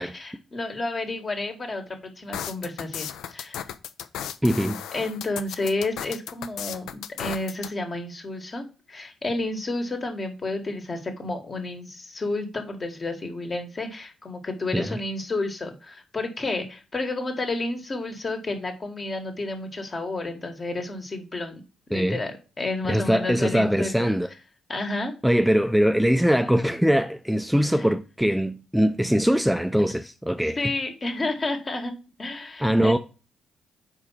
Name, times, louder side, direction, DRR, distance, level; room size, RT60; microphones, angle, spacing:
voice 1, 0.0-3.7 4.9-21.6 21.9-24.1 24.7-25.1 30.6-31.9 32.2-33.0, left 2 dB, 40° left, 1.6 m, -31 dB
sound 1, 2.3-7.7, left 10 dB, 70° left, 0.4 m, -35 dB
voice 2, 4.4-4.8 14.7-15.0 21.9-22.2 22.9-24.3 25.2-30.6 32.6-33.0, equal, ahead, 0.5 m, -22 dB
4.8 x 4.6 x 5.7 m
hypercardioid pair, 45°, 0 cm